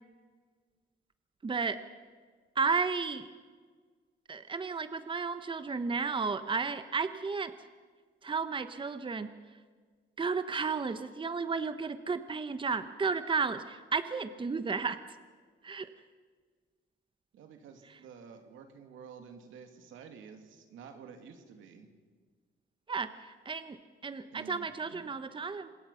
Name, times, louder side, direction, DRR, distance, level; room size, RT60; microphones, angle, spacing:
voice 1, 1.4-1.8 2.6-3.2 4.3-7.5 8.2-9.3 10.2-15.0 15.6-15.9 22.9-23.8 24.0-25.7, right 5 dB, 25° right, 11 dB, 1.0 m, -33 dB
voice 2, 17.3-21.9 24.3-25.1, right 6 dB, 85° right, 5 dB, 2.8 m, -51 dB
26.5 x 21.0 x 5.7 m, 1.5 s
cardioid pair, 90°, 20 cm